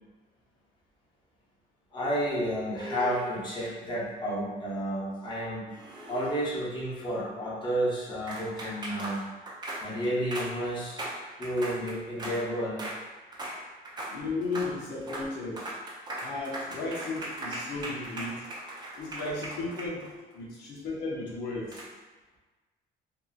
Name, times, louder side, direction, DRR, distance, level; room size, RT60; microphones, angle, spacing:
voice 1, 1.9-5.6 6.1-9.2 9.8-11.0 11.4-12.9, equal, 30° left, -7 dB, 0.9 m, -31 dB
sound 1, 2.8-3.6 5.7-6.6 8.3-12.4 12.8-13.0 13.3-13.6 13.9-14.2 14.4-14.7 15.0-15.3 15.6-20.3 21.7-21.9, right 1 dB, 25° right, 0.5 m, -39 dB
voice 2, 14.1-15.7 16.2-18.5 19.0-21.8, left 3 dB, 85° left, -4 dB, 0.6 m, -35 dB
2.7 x 2.5 x 2.4 m, 1.2 s
cardioid pair, 110°, 17 cm